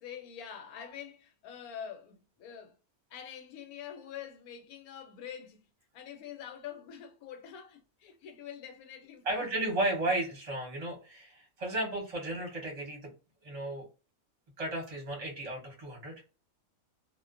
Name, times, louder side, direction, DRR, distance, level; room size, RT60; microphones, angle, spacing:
voice 1, 0.0-2.8 3.1-5.6 5.9-9.6, left 8 dB, 85° left, 1.1 m, -45 dB
voice 2, 9.2-13.0 13.4-13.9 14.6-16.1, right 1 dB, 30° right, 0.8 m, -34 dB
2.4 x 2.2 x 2.4 m
omnidirectional pair, 1.5 m